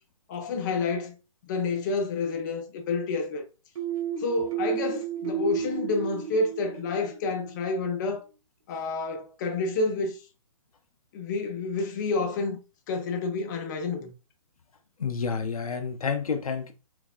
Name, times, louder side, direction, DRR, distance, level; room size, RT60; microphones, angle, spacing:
voice 1, 0.3-1.1 1.4-3.4 4.2-8.2 8.7-10.2 11.1-12.6 12.9-14.1, left 3 dB, 35° left, 0.5 m, -29 dB
sound 1, 3.8-7.4, right 8 dB, 70° right, 0.7 m, -32 dB
voice 2, 15.0-16.7, left 5 dB, 90° left, 0.5 m, -29 dB
3.3 x 2.3 x 2.3 m
hypercardioid pair, 140°, 18 cm